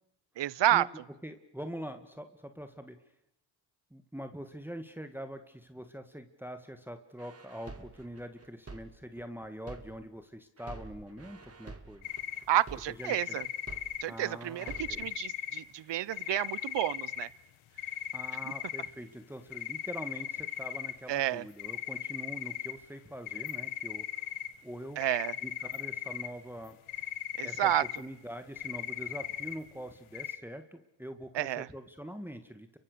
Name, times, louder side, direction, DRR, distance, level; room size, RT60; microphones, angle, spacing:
voice 1, 0.4-0.9 12.5-13.5 14.0-17.3 21.1-21.4 25.0-25.3 27.4-27.8 31.3-31.7, right 13 dB, 60° right, 23 dB, 0.9 m, -30 dB
voice 2, 1.2-3.0 3.9-12.1 13.0-13.4 14.1-15.1 18.1-24.3 24.6-25.0 25.4-27.1 27.4-32.8, equal, 5° right, 8 dB, 2.0 m, -44 dB
sound 1, 7.2-10.2 10.6-14.2 14.6-15.2, right 3 dB, 30° right, 3.3 m, -48 dB
sound 2, 12.0-12.4 13.0-14.0 14.6-15.6 16.1-17.2 17.8-18.9 19.5-20.9 21.6-22.7 23.3-24.5 25.0-26.3 26.7-28.0 28.5-29.6 30.1-30.4, left 12 dB, 85° left, 1.7 m, -38 dB
29.5 x 24.0 x 6.8 m, 0.86 s
cardioid pair, 65°, 47 cm